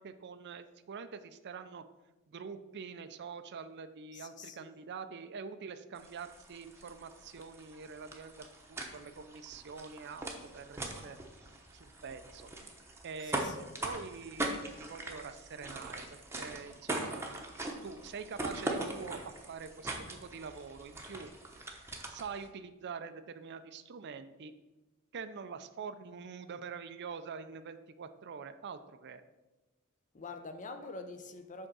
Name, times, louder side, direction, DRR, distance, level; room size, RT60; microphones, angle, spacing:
voice 1, 0.0-1.8 2.3-8.3 8.7-11.2 11.7-12.5 13.0-13.5 13.8-16.0 16.4-17.4 17.8-21.3 22.1-24.5 25.1-29.2, right 5 dB, 50° right, 0.5 m, -45 dB
voice 2, 4.1-4.7 13.2-13.6 30.1-31.7, left 3 dB, 35° left, 0.6 m, -45 dB
sound 1, 6.0-22.5, right 2 dB, 10° right, 0.9 m, -41 dB
7.8 x 3.7 x 6.1 m
head